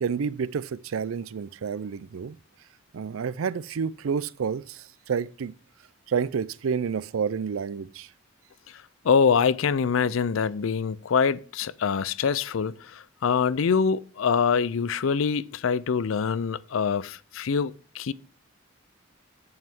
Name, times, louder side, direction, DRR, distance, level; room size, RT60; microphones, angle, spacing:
voice 1, 0.0-2.4 2.9-5.5 6.1-8.1, right 6 dB, 85° right, 0.4 m, -29 dB
voice 2, 8.7-18.1, left 6 dB, 75° left, 0.4 m, -25 dB
7.7 x 5.6 x 6.0 m
head